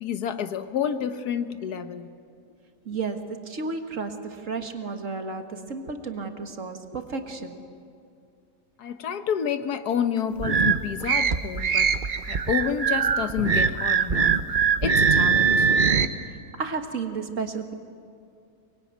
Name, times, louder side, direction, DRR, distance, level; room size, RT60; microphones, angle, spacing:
voice 1, 0.0-2.1 8.8-11.9 12.3-14.5 14.8-15.7, left 8 dB, 80° left, 1.6 m, -29 dB
voice 2, 2.9-7.6 16.6-17.7, right 4 dB, 55° right, 1.9 m, -32 dB
sound 1, 10.4-16.1, right 6 dB, 40° right, 0.9 m, -22 dB
24.0 x 21.0 x 9.4 m
omnidirectional pair, 1.6 m